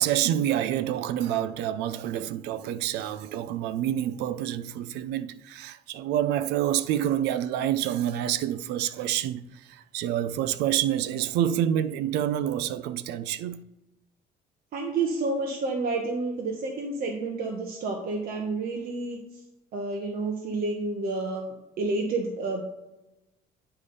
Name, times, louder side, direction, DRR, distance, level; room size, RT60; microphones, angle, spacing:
voice 1, 0.0-9.4 9.7-13.6, right 11 dB, 90° right, 0.5 m, -27 dB
voice 2, 14.7-19.2 19.7-22.6, right 3 dB, 60° right, 1.1 m, -30 dB
10.0 x 3.5 x 5.4 m
cardioid pair, 110°, 17 cm